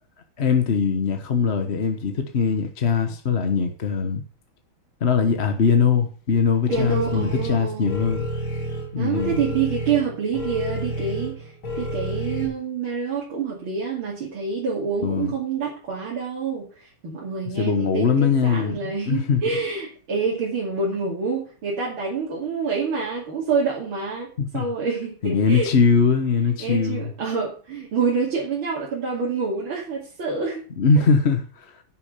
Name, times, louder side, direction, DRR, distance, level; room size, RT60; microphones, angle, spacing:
voice 1, 0.4-4.2 5.0-8.3 8.9-9.4 15.0-15.3 17.6-19.4 24.4-24.6 25.2-27.1 30.8-31.8, left 5 dB, 40° left, 1.2 m, -21 dB
sound 1, 6.7-12.5, equal, 75° left, 3.9 m, -30 dB
voice 2, 6.7-8.0 9.0-25.7 26.6-30.6, right 5 dB, 80° right, 3.4 m, -27 dB
11.0 x 6.7 x 6.6 m
omnidirectional pair, 2.2 m